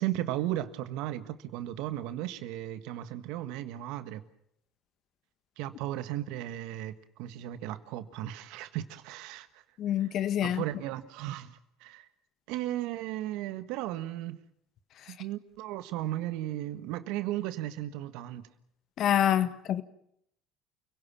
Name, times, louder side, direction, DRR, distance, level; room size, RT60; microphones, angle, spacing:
voice 1, 0.0-4.2 5.6-9.6 10.4-12.1 12.5-14.4 15.1-18.5, right 14 dB, 70° right, 1.5 m, -35 dB
voice 2, 9.8-10.6 19.0-19.8, left 11 dB, 55° left, 1.6 m, -26 dB
29.5 x 17.5 x 7.4 m
hypercardioid pair, 75°, 0 cm